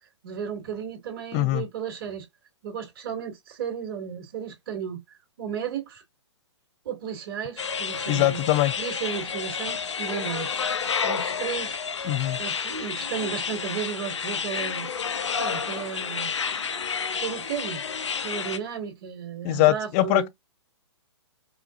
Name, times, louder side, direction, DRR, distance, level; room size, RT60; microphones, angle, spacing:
voice 1, 0.2-2.3 2.6-6.0 6.8-8.4 8.8-10.6 11.0-11.8 12.4-14.9 15.4-16.3 17.2-17.8 18.2-20.3, right 8 dB, 50° right, 2.3 m, -34 dB
voice 2, 1.3-1.6 8.1-8.7 12.0-12.4 19.4-20.3, left 16 dB, 30° left, 0.5 m, -22 dB
sound 1, 7.6-18.6, left 6 dB, 75° left, 0.8 m, -30 dB
5.0 x 2.5 x 2.5 m
hypercardioid pair, 130°, 15 cm